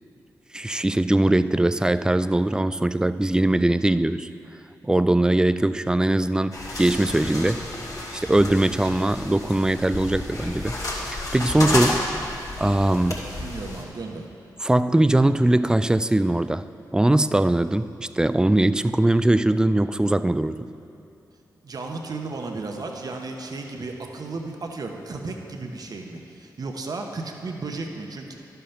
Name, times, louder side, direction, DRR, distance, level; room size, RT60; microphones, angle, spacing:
voice 1, 0.5-4.3 4.8-7.7 8.1-10.8 11.1-12.1 12.6-13.4 14.6-20.7, right 1 dB, 10° right, 14 dB, 0.3 m, -21 dB
sound 1, 6.5-13.8, left 1 dB, 45° left, 2.3 m, -31 dB
voice 2, 13.4-14.3 21.6-28.3, right 3 dB, 55° right, 2 dB, 1.0 m, -34 dB
11.5 x 5.5 x 5.7 m, 2.7 s
cardioid pair, 45°, 8 cm